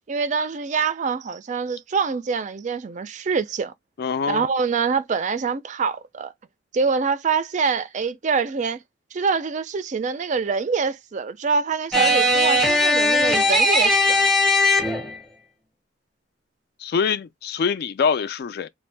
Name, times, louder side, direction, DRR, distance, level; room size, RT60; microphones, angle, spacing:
voice 1, 0.1-3.7 4.3-6.3 6.7-8.8 9.1-14.3, right 5 dB, 40° right, 0.4 m, -25 dB
voice 2, 4.0-4.4 16.8-18.7, left 6 dB, 55° left, 0.3 m, -24 dB
sound 1, 11.9-15.2, left 1 dB, ahead, 0.6 m, -19 dB
2.6 x 2.2 x 3.2 m
head